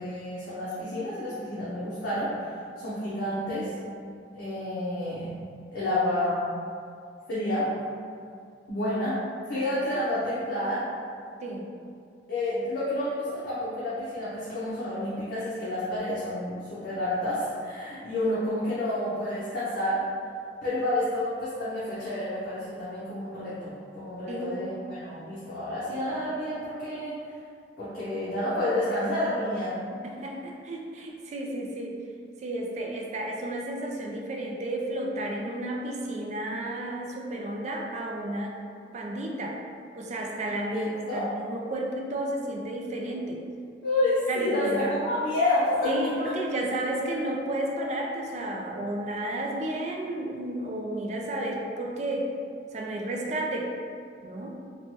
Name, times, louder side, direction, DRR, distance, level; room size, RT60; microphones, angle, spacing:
voice 1, 0.0-3.7 4.3-5.3 5.7-6.4 7.3-7.7 8.7-9.2 9.5-10.8 12.3-20.0 20.6-27.1 27.8-29.7 40.7-41.3 43.8-45.9, left 1 dB, 80° left, -11 dB, 0.7 m, -29 dB
voice 2, 24.3-24.7 29.9-32.0 32.4-38.6 38.9-39.5 40.0-43.4 44.3-44.9 45.8-52.3 52.7-53.7 54.2-54.6, right 1 dB, 40° right, -1 dB, 0.3 m, -32 dB
3.0 x 2.2 x 2.8 m, 2.3 s
head